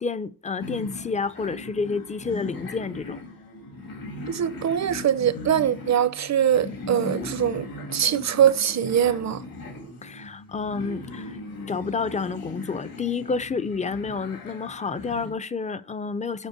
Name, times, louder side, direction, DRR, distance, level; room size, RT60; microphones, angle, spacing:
voice 1, 0.0-3.2 10.0-11.4 11.7-16.5, left 4 dB, 20° left, 0.4 m, -29 dB
sound 1, 0.6-15.3, left 2 dB, 80° left, 2.3 m, -38 dB
voice 2, 4.3-9.4, right 9 dB, 50° right, 0.7 m, -23 dB
7.4 x 5.1 x 6.5 m
wide cardioid pair, 150°, 35 cm